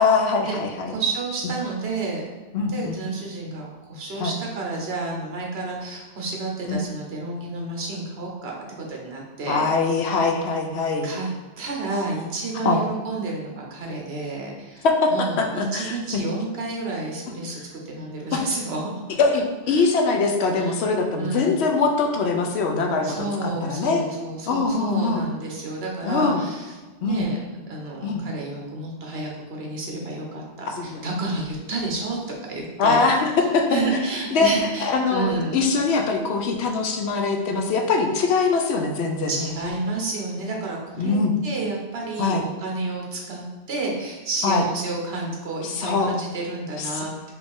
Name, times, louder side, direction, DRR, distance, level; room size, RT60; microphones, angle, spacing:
voice 1, 0.0-0.9 2.5-3.0 4.2-4.3 6.7-6.8 9.5-11.1 12.6-12.8 14.8-15.1 15.4-16.0 18.3-18.4 19.2-24.0 24.5-25.2 26.0-26.4 27.0-27.2 28.0-28.2 30.7-31.0 32.8-33.7 34.3-34.5 34.8-39.5 41.0-41.3 42.2-42.4 44.4-44.6 45.6-46.1 46.8-47.0, left 4 dB, 85° left, 3 dB, 0.9 m, -22 dB
voice 2, 0.9-2.2 2.6-9.7 10.0-10.3 11.0-11.3 11.6-18.9 19.7-19.8 20.5-20.8 21.2-21.7 23.0-33.1 33.7-35.6 39.3-41.2 41.4-47.3, right 3 dB, 70° right, -1 dB, 1.2 m, -30 dB
4.5 x 2.6 x 3.6 m, 1.2 s
omnidirectional pair, 1.1 m